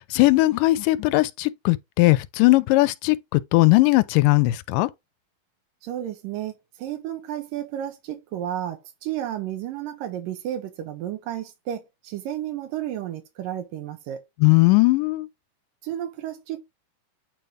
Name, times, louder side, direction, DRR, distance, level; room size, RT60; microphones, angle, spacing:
voice 1, 0.0-4.9 14.4-15.3, left 20 dB, 80° left, 2.1 m, -19 dB
voice 2, 5.8-14.2 15.8-16.6, right 11 dB, 90° right, 2.7 m, -32 dB
9.0 x 3.3 x 3.8 m
omnidirectional pair, 3.8 m